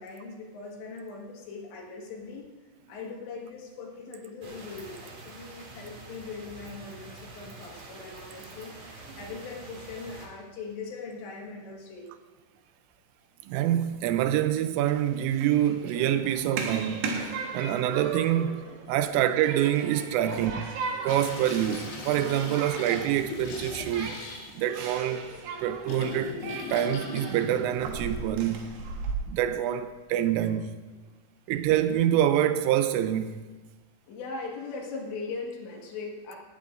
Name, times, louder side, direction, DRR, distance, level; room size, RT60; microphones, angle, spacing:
voice 1, 0.0-12.1 18.9-19.2 20.3-20.5 30.4-30.5 34.1-36.4, left 4 dB, 65° left, 3.6 m, -40 dB
sound 1, 4.4-10.3, right 3 dB, 45° right, 3.4 m, -46 dB
voice 2, 13.5-20.7 21.0-24.2 24.6-25.3 25.6-26.4 26.7-28.7 29.3-30.8 31.5-33.4, right 11 dB, 85° right, 3.1 m, -26 dB
Human group actions, 14.8-29.1, right 4 dB, 70° right, 3.0 m, -38 dB
sound 2, 21.1-28.7, left 4 dB, 85° left, 5.2 m, -40 dB
19.0 x 15.0 x 2.5 m
omnidirectional pair, 5.9 m